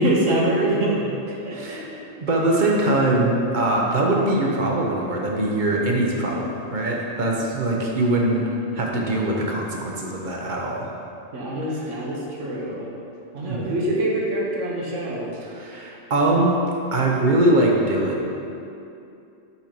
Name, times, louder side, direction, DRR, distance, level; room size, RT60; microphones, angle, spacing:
voice 1, 0.0-1.8 11.3-12.9 13.3-15.3, right 1 dB, 70° right, -3 dB, 1.4 m, -24 dB
voice 2, 1.5-1.8 2.2-11.0 13.5-13.7 15.4-16.5 16.9-18.2, right 1 dB, 45° right, -1 dB, 0.8 m, -22 dB
5.7 x 5.4 x 4.4 m, 2.6 s
omnidirectional pair, 1.3 m